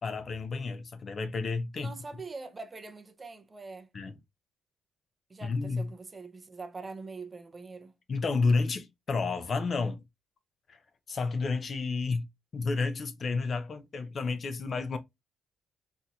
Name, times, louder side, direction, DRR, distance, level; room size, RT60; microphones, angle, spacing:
voice 1, 0.0-1.9 3.9-4.2 5.4-5.9 8.1-10.0 10.7-10.8 11.1-12.3 12.5-15.0, left 4 dB, 40° left, 0.5 m, -30 dB
voice 2, 1.7-3.9 5.3-8.0, right 3 dB, 25° right, 0.5 m, -43 dB
4.2 x 2.6 x 2.3 m
cardioid pair, 135°, 0 cm